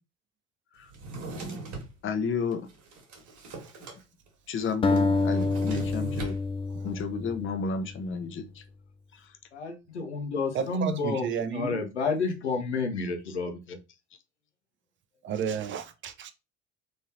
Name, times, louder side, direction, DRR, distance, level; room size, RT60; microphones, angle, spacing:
Drawer open or close, 0.9-1.9 2.5-4.0 4.3-4.4 4.6-6.4, right 3 dB, 60° right, 1.5 m, -39 dB
voice 1, 2.0-2.7 4.5-6.4 6.8-8.6 9.1-9.3 13.3-13.4, left 5 dB, 35° left, 0.8 m, -32 dB
sound 1, 4.8-8.0, left 3 dB, 15° left, 0.4 m, -27 dB
voice 2, 9.5-11.2 11.5-13.8, left 4 dB, 90° left, 0.9 m, -30 dB
voice 3, 10.5-11.8 15.2-16.3, right 7 dB, 35° right, 0.7 m, -32 dB
3.7 x 3.2 x 2.8 m
figure-of-eight pair, 60°, 33 cm